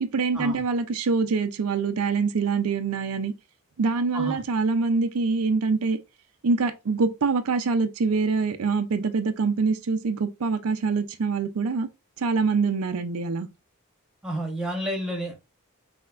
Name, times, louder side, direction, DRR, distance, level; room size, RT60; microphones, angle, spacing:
voice 1, 0.0-3.3 3.8-6.0 6.4-11.9 12.2-13.5, right 4 dB, 80° right, 0.5 m, -25 dB
voice 2, 14.2-15.4, right 1 dB, 5° right, 1.1 m, -30 dB
5.6 x 2.8 x 2.4 m
head